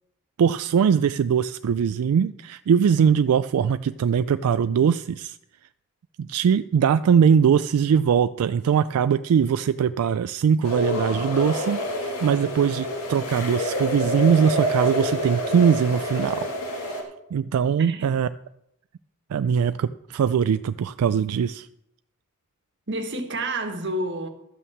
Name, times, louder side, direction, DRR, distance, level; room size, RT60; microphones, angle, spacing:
voice 1, 0.4-5.4 6.2-17.0 17.3-18.3 19.3-21.7, right 7 dB, 85° right, 0.3 m, -21 dB
sound 1, 10.6-17.0, left 1 dB, 85° left, 2.4 m, -28 dB
voice 2, 17.8-18.1 22.9-24.3, right 1 dB, 55° right, 1.4 m, -29 dB
12.5 x 5.6 x 7.2 m
head